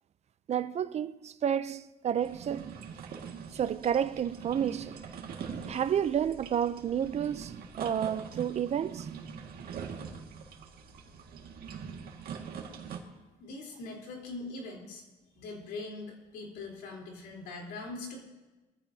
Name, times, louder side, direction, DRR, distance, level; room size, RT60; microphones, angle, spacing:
voice 1, 0.5-2.8 3.5-5.0 5.7-9.1, right 9 dB, 40° right, 0.5 m, -30 dB
sound 1, 2.2-13.0, right 6 dB, 60° right, 1.9 m, -43 dB
voice 2, 13.4-15.0 15.3-18.2, left 3 dB, 85° left, 3.7 m, -42 dB
21.5 x 14.5 x 2.8 m
cardioid pair, 110°, 17 cm